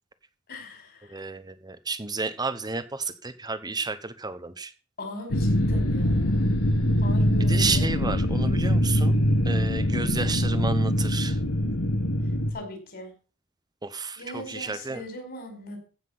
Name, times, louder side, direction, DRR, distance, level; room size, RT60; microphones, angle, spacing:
voice 1, 0.5-1.2 5.0-6.6 7.0-8.0 10.0-10.2 12.5-13.1 14.2-15.8, left 1 dB, 45° left, 5.0 m, -40 dB
voice 2, 1.1-4.7 7.5-9.2 9.5-11.4 13.8-14.2 14.5-15.0, right 4 dB, 20° right, 0.9 m, -31 dB
sound 1, 5.3-12.5, equal, 85° left, 1.9 m, -23 dB
15.5 x 6.0 x 5.9 m
head